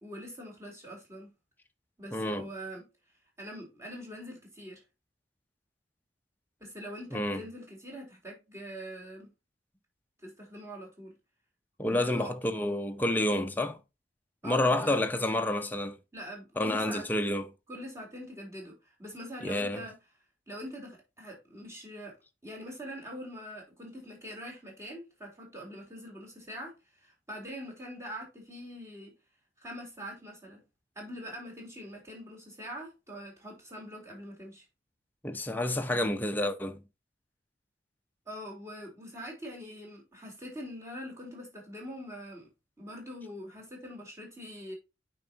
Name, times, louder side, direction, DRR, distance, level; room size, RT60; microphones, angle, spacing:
voice 1, 0.0-1.3 2.0-2.8 3.4-4.8 6.6-9.3 10.2-11.1 11.8-12.3 14.4-15.0 16.1-17.1 17.7-19.9 20.5-22.1 22.4-26.7 27.0-29.1 29.6-30.6 31.0-34.6 38.3-42.5 42.8-44.7, equal, 15° right, 3.8 m, -43 dB
voice 2, 2.1-2.5 7.1-7.4 11.8-13.8 14.4-16.0 16.6-17.5 19.4-19.8 35.2-36.8, left 1 dB, 10° left, 0.8 m, -29 dB
9.1 x 5.4 x 2.9 m
head